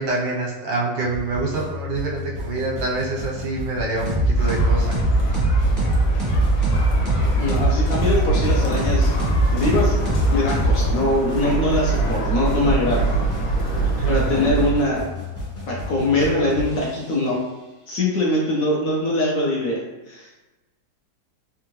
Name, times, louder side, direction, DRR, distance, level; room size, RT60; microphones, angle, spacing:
voice 1, 0.0-4.9 13.8-14.2, right 3 dB, 90° right, -3 dB, 1.5 m, -26 dB
sound 1, 1.0-17.6, left 1 dB, 25° left, 0.7 m, -34 dB
sound 2, 4.1-11.2, equal, 20° right, 0.5 m, -21 dB
sound 3, 4.4-14.7, right 4 dB, 90° left, 1.5 m, -24 dB
voice 2, 7.4-9.1 9.5-10.0 10.3-13.1 14.1-15.0 15.7-17.4 17.9-20.3, left 1 dB, 70° left, -4 dB, 0.9 m, -22 dB
3.6 x 2.4 x 2.9 m, 1.1 s
omnidirectional pair, 1.9 m